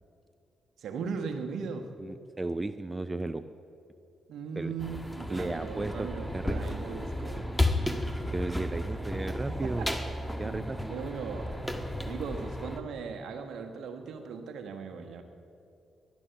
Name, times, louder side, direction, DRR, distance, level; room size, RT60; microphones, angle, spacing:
voice 1, 0.8-1.9 4.3-7.5 9.5-9.9 10.4-15.2, right 5 dB, 65° right, 5 dB, 1.5 m, -38 dB
voice 2, 2.0-3.4 4.6-4.7 5.3-6.1 6.3-7.0 8.3-9.9 10.4-10.9, right 2 dB, 25° right, 12 dB, 0.6 m, -35 dB
sound 1, 4.8-12.8, left 1 dB, 5° left, 1.6 m, -33 dB
18.5 x 12.0 x 5.9 m, 2.6 s
hypercardioid pair, 45°, 0 cm